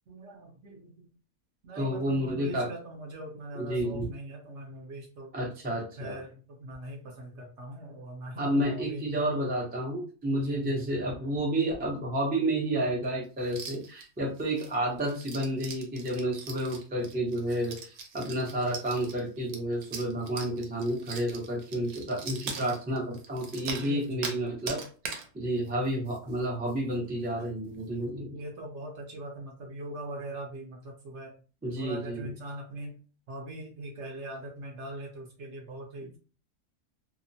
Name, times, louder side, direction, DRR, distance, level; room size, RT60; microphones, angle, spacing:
voice 1, 0.1-1.1 1.6-5.3 6.0-9.3 10.3-10.9 23.7-24.3 28.3-31.4 31.8-33.0 33.3-36.2, right 1 dB, 60° right, 0 dB, 0.8 m, -42 dB
voice 2, 1.8-2.7 3.5-4.1 5.3-6.2 8.4-24.8 25.3-28.4 31.6-32.3, right 1 dB, 15° right, -3 dB, 0.3 m, -30 dB
sound 1, 13.4-14.0 14.4-24.4 24.7-25.3 25.7-25.8 26.1-26.4 26.7-26.8 27.3-27.4, right 5 dB, 85° right, 1.0 m, -41 dB
2.8 x 2.0 x 2.6 m, 0.37 s
omnidirectional pair, 1.5 m